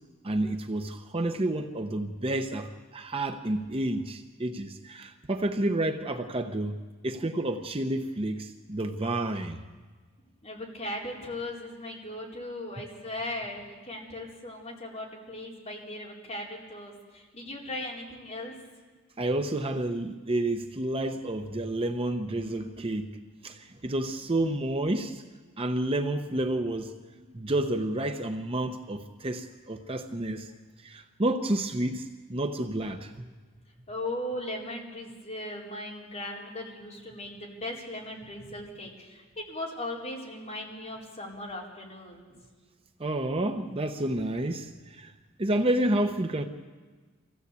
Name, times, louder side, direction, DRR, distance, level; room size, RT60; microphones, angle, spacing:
voice 1, 0.2-6.8 7.0-9.6 19.2-23.1 23.4-25.2 25.6-26.9 27.3-30.5 30.8-33.3 43.0-45.1 45.4-46.4, right 1 dB, 30° right, 6 dB, 0.8 m, -30 dB
voice 2, 10.4-18.6 22.2-23.2 24.1-24.4 33.9-42.3, left 1 dB, 35° left, -2 dB, 4.4 m, -38 dB
25.0 x 16.0 x 8.3 m, 1.4 s
head